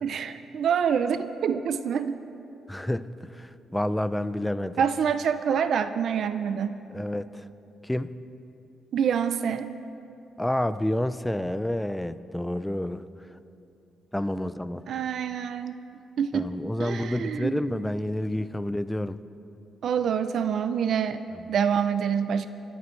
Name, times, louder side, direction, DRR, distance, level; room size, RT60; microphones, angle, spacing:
voice 1, 0.0-2.2 4.8-6.8 8.9-9.7 14.9-15.8 16.2-16.5 16.8-17.6 19.8-21.2 21.5-22.5, right 7 dB, 65° right, 11 dB, 0.5 m, -26 dB
voice 2, 2.7-4.8 6.9-7.5 7.8-8.1 10.4-13.0 14.1-14.8 16.3-19.2 21.3-21.5, left 1 dB, 5° left, 13 dB, 0.4 m, -29 dB
24.0 x 13.5 x 3.2 m, 2.8 s
cardioid pair, 120°, 0 cm